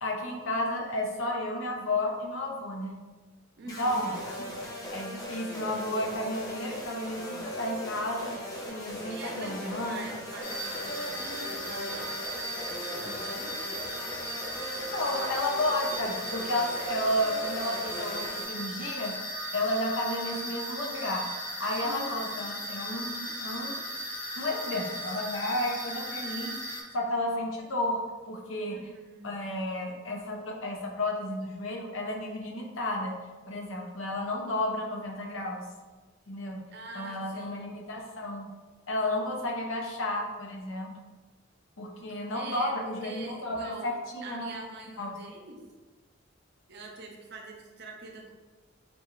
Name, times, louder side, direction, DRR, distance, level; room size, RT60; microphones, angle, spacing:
voice 1, 0.0-2.9 3.8-4.5 4.9-8.4 8.7-10.0 14.9-19.2 19.5-21.2 21.6-23.8 24.4-28.0 28.3-28.8 29.2-33.1 33.5-35.6 36.3-36.6 36.9-38.5 38.9-40.9 41.8-44.5 45.0-45.2, left 1 dB, 90° left, 0 dB, 0.6 m, -32 dB
voice 2, 3.6-4.0 9.1-12.2 12.5-13.5 21.8-22.3 28.7-29.3 36.7-37.7 42.1-43.9 44.2-45.6 46.7-48.3, right 3 dB, 55° right, 1 dB, 0.6 m, -45 dB
sound 1, 3.7-18.4, equal, 20° left, 0.5 m, -39 dB
sound 2, 10.4-26.8, equal, 45° left, 1.1 m, -37 dB
3.7 x 2.4 x 3.0 m, 1.3 s
head